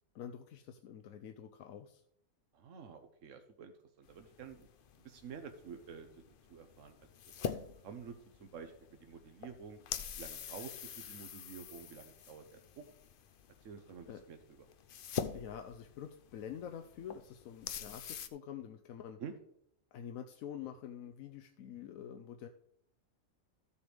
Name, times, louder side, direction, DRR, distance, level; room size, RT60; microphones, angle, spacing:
voice 1, 0.1-2.0 14.1-14.2 15.3-19.2 19.9-22.5, left 9 dB, 75° left, 6 dB, 1.0 m, -47 dB
voice 2, 2.5-3.7 4.0-4.7 5.0-6.2 6.5-7.1 7.4-8.7 9.0-9.8 10.2-12.8 13.6-14.4 19.2-19.3, right 6 dB, 65° right, 6 dB, 1.1 m, -49 dB
sound 1, 4.0-18.3, left 8 dB, 60° left, 0.6 m, -45 dB
14.0 x 7.0 x 3.4 m, 0.73 s
omnidirectional pair, 1.5 m